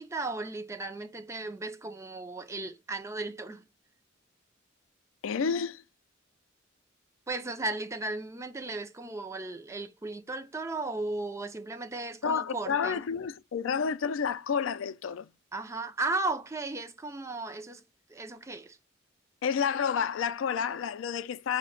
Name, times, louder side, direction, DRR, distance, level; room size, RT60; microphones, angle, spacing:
voice 1, 0.0-3.7 7.3-13.0 15.5-17.8 18.1-18.8, right 2 dB, 15° right, 0.3 m, -35 dB
voice 2, 5.2-5.8 12.2-15.3 19.4-21.6, left 6 dB, 85° left, 0.4 m, -30 dB
5.7 x 2.1 x 3.7 m
head